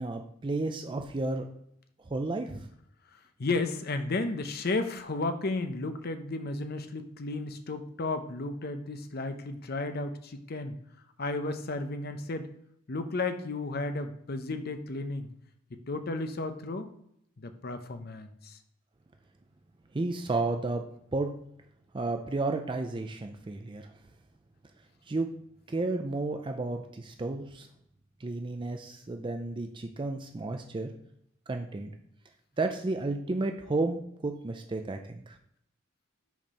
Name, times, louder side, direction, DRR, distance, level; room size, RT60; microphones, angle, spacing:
voice 1, 0.0-1.5 2.1-2.7 19.9-20.8 21.1-21.3 21.9-23.9 25.1-25.3 25.7-27.7 28.2-30.9 31.5-31.9 32.6-35.4, right 2 dB, 25° right, 5 dB, 0.4 m, -32 dB
voice 2, 3.4-10.8 11.2-12.5 12.9-15.3 15.9-16.9 17.4-18.6, left 3 dB, 50° left, 8 dB, 0.7 m, -33 dB
5.9 x 4.4 x 5.4 m, 0.73 s
head